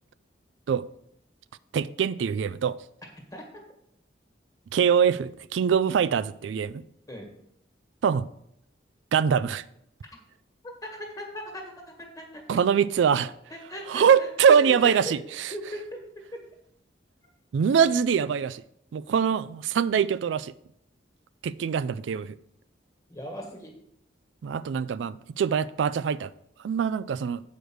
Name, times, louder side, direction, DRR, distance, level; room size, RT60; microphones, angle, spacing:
voice 1, 1.7-2.8 4.7-6.8 8.0-8.3 9.1-9.6 12.5-13.3 13.9-15.5 17.5-18.6 18.9-20.5 21.4-22.4 24.4-26.3 26.6-27.4, right 7 dB, 85° right, 0.3 m, -23 dB
voice 2, 3.3-3.6 7.1-7.3 10.8-12.6 13.5-15.1 15.5-16.0 23.1-23.7, equal, 20° left, 1.7 m, -38 dB
7.9 x 5.1 x 6.2 m
head